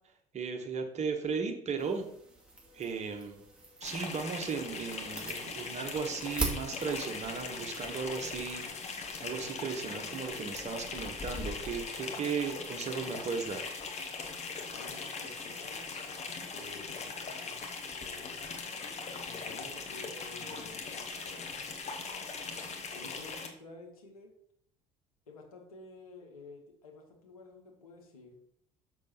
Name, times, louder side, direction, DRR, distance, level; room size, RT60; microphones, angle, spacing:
voice 1, 0.3-2.1 2.7-3.4 3.8-13.6, right 5 dB, 40° right, 4 dB, 1.4 m, -36 dB
sound 1, 1.8-9.0, right 2 dB, 5° right, 2.3 m, -42 dB
sound 2, 3.8-23.5, left 4 dB, 40° left, 1.3 m, -40 dB
voice 2, 14.7-15.9 16.5-17.6 17.9-18.6 19.2-21.5 22.9-24.3 25.3-28.4, left 2 dB, 80° left, 1 dB, 1.4 m, -51 dB
6.8 x 6.2 x 4.3 m, 0.68 s
figure-of-eight pair, 55°, 18 cm